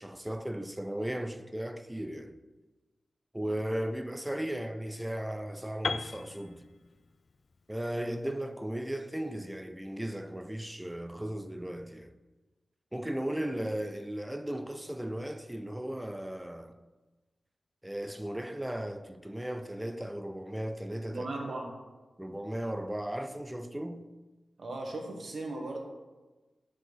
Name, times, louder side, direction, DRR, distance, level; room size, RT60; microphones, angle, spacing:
voice 1, 0.0-2.4 3.3-6.7 7.7-12.2 12.9-16.8 17.8-21.3 22.2-24.0, right 1 dB, 10° right, 0.5 m, -36 dB
Piano, 5.8-9.8, left 4 dB, 60° left, 0.3 m, -40 dB
voice 2, 21.1-21.7 24.6-25.8, right 2 dB, 70° right, 1.4 m, -37 dB
6.2 x 6.0 x 5.2 m
wide cardioid pair, 75°, 0 cm